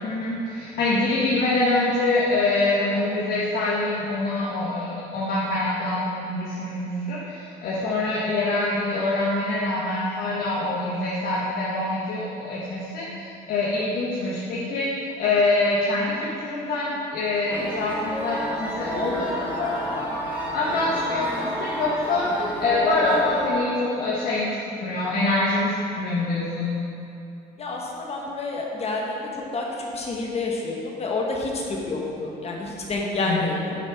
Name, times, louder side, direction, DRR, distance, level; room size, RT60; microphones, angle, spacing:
voice 1, 0.0-26.7 33.2-33.5, left 2 dB, 65° left, -7 dB, 1.4 m, -25 dB
sound 1, 17.5-23.5, equal, 10° right, 1.5 m, -30 dB
voice 2, 27.6-33.8, left 3 dB, 40° left, -1 dB, 1.3 m, -29 dB
8.8 x 6.1 x 3.6 m, 2.7 s
cardioid pair, 110°, 17 cm